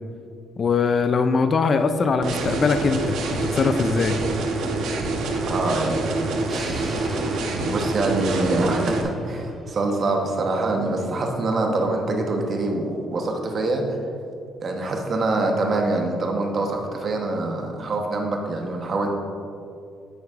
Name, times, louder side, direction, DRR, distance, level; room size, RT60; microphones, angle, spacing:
voice 1, 0.6-4.2, left 4 dB, 40° left, 9 dB, 0.4 m, -21 dB
sound 1, 2.2-9.0, right 2 dB, 75° right, 0.9 m, -26 dB
voice 2, 5.5-6.7 7.3-13.8 14.6-19.1, right 2 dB, 40° right, 2 dB, 1.0 m, -25 dB
sound 2, 6.5-10.5, right 1 dB, 10° right, 1.0 m, -39 dB
9.8 x 7.9 x 2.5 m, 2.5 s
cardioid pair, 135°, 0 cm